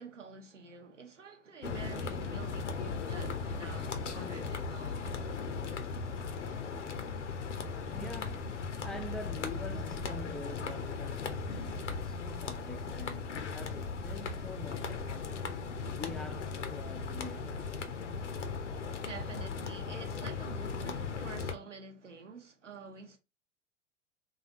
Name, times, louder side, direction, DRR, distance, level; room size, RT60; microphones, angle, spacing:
voice 1, 0.0-5.2 19.0-23.2, right 5 dB, 85° right, 1.0 m, -48 dB
sound 1, 1.6-21.6, left 5 dB, 80° left, 0.7 m, -37 dB
voice 2, 7.9-15.4 15.7-17.7, left 1 dB, ahead, 0.6 m, -46 dB
4.0 x 2.7 x 2.9 m
figure-of-eight pair, 85°, 36 cm